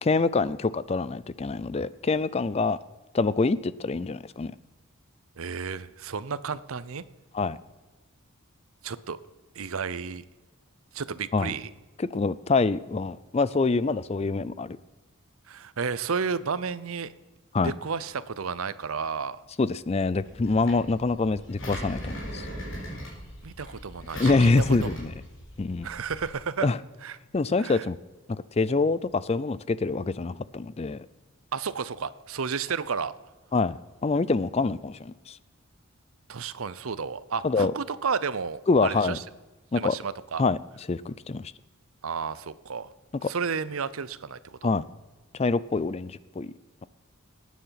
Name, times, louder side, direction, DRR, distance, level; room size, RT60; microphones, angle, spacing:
voice 1, 0.0-2.8 3.1-4.5 7.3-7.6 11.3-11.5 12.0-14.8 17.5-17.7 19.6-22.4 24.2-25.1 25.6-25.9 26.6-26.8 27.3-28.0 28.3-31.1 33.5-35.4 37.4-37.7 38.7-39.2 39.7-39.9 40.4-40.6 40.9-41.5 43.2-43.3 44.6-44.8 45.4-46.5, left 3 dB, 30° left, 18 dB, 0.4 m, -25 dB
voice 2, 5.4-7.0 8.8-9.2 9.6-10.2 10.9-11.7 15.5-17.1 17.6-19.4 23.4-25.0 25.8-26.7 27.0-27.2 27.6-27.9 31.5-33.1 36.3-39.2 39.8-40.4 42.0-42.9 43.2-44.7, right 5 dB, 75° right, 17 dB, 0.7 m, -32 dB
Engine, 20.2-26.3, equal, 60° left, 4.3 m, -38 dB
19.5 x 9.3 x 5.8 m, 1.2 s
head